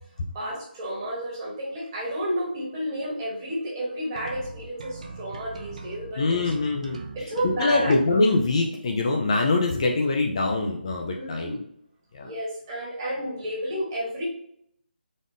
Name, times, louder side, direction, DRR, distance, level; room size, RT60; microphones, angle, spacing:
voice 1, 0.3-6.2 7.1-8.0 11.1-11.6 12.2-14.2, equal, 20° right, -5 dB, 1.3 m, -31 dB
sound 1, 4.2-8.2, right 4 dB, 40° right, 0.4 m, -40 dB
voice 2, 6.2-7.0 7.4-11.6 12.1-12.3, left 3 dB, 35° left, 1 dB, 0.4 m, -23 dB
4.1 x 2.4 x 3.5 m, 0.70 s
figure-of-eight pair, 165°, 6 cm